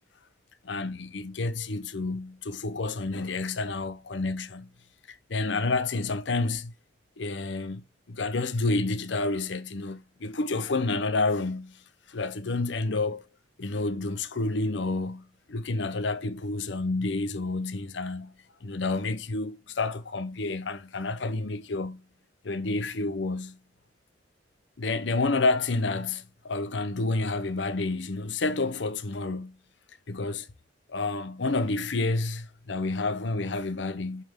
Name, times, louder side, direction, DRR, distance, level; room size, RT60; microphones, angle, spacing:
voice 1, 0.6-4.7 5.1-6.7 7.2-7.8 8.1-11.8 12.1-13.3 13.6-18.3 18.6-22.0 22.4-23.6 24.8-29.5 30.1-30.5 30.9-34.2, left 3 dB, 70° left, 0.7 m, -29 dB
8.4 x 3.6 x 3.5 m
head